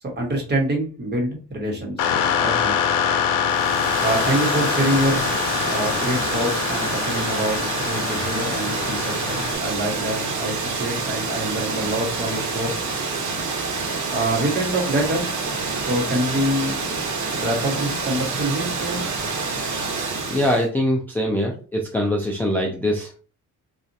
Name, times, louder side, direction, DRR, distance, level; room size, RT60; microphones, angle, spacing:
voice 1, 0.0-2.1 2.4-2.8 4.0-5.4 5.7-12.8 14.1-15.2 15.9-16.8 17.3-19.5, right 1 dB, 30° right, 1 dB, 1.2 m, -25 dB
sound 1, 2.0-9.6, left 8 dB, 90° left, 0.6 m, -24 dB
Water, 3.4-20.7, right 4 dB, 60° right, 1.1 m, -27 dB
voice 2, 20.3-23.2, left 1 dB, 5° left, -1 dB, 0.5 m, -23 dB
4.2 x 2.4 x 2.7 m, 0.36 s
cardioid pair, 130°, 33 cm